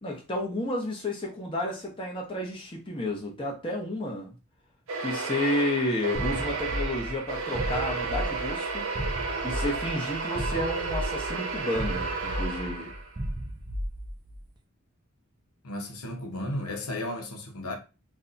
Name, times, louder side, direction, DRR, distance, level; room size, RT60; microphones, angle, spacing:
voice 1, 0.0-4.3 5.0-8.9 9.4-12.9, left 1 dB, 25° left, 0.7 m, -31 dB
sound 1, 4.9-13.2, right 4 dB, 70° right, 0.7 m, -32 dB
sound 2, 6.1-14.4, equal, 20° right, 0.3 m, -35 dB
voice 2, 15.6-17.7, left 1 dB, 80° left, 0.7 m, -34 dB
2.6 x 2.2 x 3.8 m
head